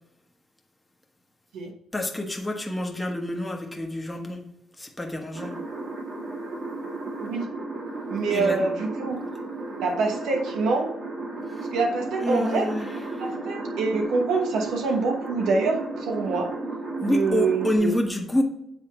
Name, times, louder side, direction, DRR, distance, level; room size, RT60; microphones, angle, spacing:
voice 1, 1.9-4.4 4.8-5.5 8.3-8.6 11.5-11.7 12.2-13.3 17.0-18.4, left 1 dB, 10° left, 1 dB, 1.1 m, -27 dB
sound 1, 5.3-17.8, right 2 dB, 55° right, 2.2 m, -34 dB
voice 2, 8.1-9.2 9.8-10.9 11.7-12.7 13.2-16.5 17.0-17.9, right 4 dB, 80° right, 2 dB, 1.0 m, -25 dB
7.9 x 3.7 x 4.4 m, 0.83 s
cardioid pair, 90°, 0 cm